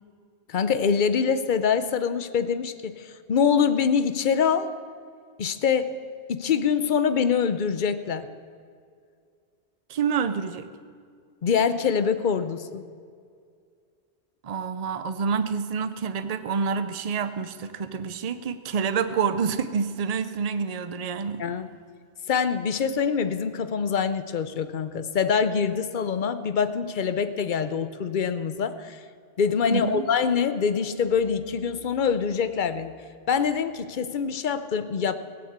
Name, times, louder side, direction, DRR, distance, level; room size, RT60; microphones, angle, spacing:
voice 1, 0.5-4.7 5.4-5.9 6.3-8.3 11.4-12.8 21.4-21.7 22.3-29.0 29.4-32.9 33.3-35.1, left 6 dB, 55° left, 12 dB, 0.8 m, -24 dB
voice 2, 9.9-10.7 14.4-21.4 29.7-30.0, right 6 dB, 40° right, 11 dB, 0.7 m, -27 dB
16.5 x 7.9 x 8.0 m, 2.2 s
omnidirectional pair, 1.1 m